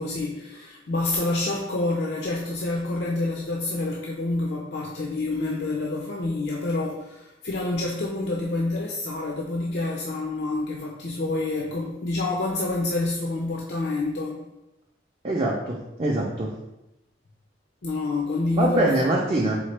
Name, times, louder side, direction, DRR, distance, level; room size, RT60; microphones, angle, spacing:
voice 1, 0.0-14.4 17.8-18.9 19.3-19.6, left 2 dB, 65° left, -1 dB, 0.5 m, -28 dB
voice 2, 15.2-16.5 18.5-19.6, right 1 dB, 30° right, -3 dB, 0.5 m, -24 dB
3.9 x 3.6 x 3.3 m, 0.92 s
head